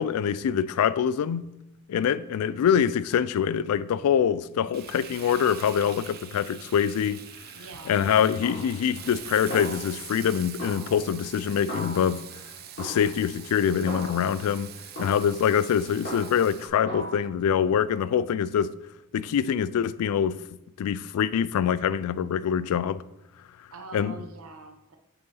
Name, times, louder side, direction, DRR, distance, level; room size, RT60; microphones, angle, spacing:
voice 1, 0.0-1.5 1.9-7.2 7.9-12.2 12.8-14.7 15.0-18.7 19.1-20.4 20.8-23.0 23.9-24.2, left 8 dB, 85° left, 0.3 m, -24 dB
voice 2, 1.9-2.3 7.5-8.0 23.7-25.0, right 4 dB, 75° right, 0.8 m, -44 dB
Frying (food), 4.7-16.7, right 9 dB, 45° right, 0.5 m, -44 dB
Snare drum, 8.4-9.2 9.5-10.3 10.6-12.4 12.8-14.4 15.0-16.6 16.9-17.1, equal, 50° left, 2.1 m, -38 dB
7.5 x 4.7 x 4.1 m
head